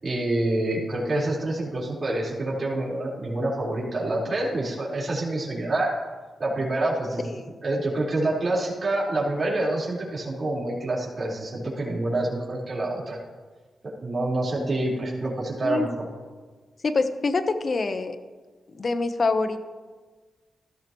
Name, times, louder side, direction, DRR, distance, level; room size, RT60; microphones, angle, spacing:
voice 1, 0.0-5.9 6.4-7.3 7.6-13.2 14.0-16.1, right 2 dB, 45° right, -5 dB, 4.4 m, -27 dB
voice 2, 15.6-15.9 16.8-18.2 18.8-19.6, left 3 dB, 50° left, 9 dB, 1.0 m, -25 dB
15.0 x 13.0 x 3.1 m, 1.4 s
cardioid pair, 60°, 0 cm